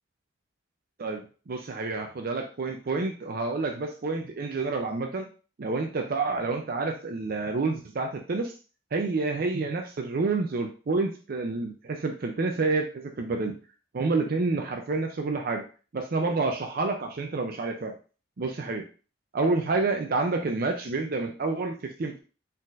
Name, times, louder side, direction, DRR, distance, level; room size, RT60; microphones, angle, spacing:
voice 1, 1.0-5.3 5.6-8.5 8.9-13.5 13.9-15.6 15.9-17.9 18.4-18.8 19.3-22.2, right 3 dB, 50° right, 4 dB, 0.5 m, -28 dB
4.2 x 4.0 x 2.5 m, 0.37 s
head